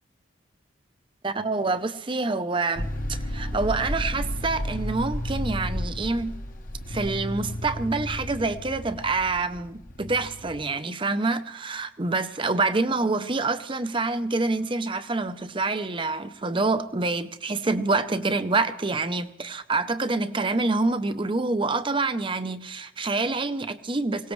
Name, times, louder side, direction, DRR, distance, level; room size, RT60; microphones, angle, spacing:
voice 1, 1.2-6.3 6.9-24.3, right 3 dB, 25° right, 0.6 m, -27 dB
sound 1, 2.8-10.6, equal, 40° left, 1.0 m, -32 dB
24.0 x 18.0 x 3.2 m
head